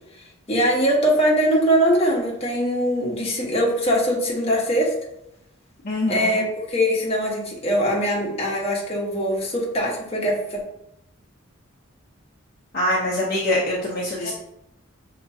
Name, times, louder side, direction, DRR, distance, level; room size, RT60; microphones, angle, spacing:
voice 1, 0.5-4.9 6.1-10.6 14.2-14.3, equal, 30° left, -3 dB, 1.1 m, -22 dB
voice 2, 5.8-6.4 12.7-14.3, left 1 dB, 45° left, -6 dB, 0.8 m, -24 dB
5.8 x 3.0 x 2.7 m, 0.83 s
head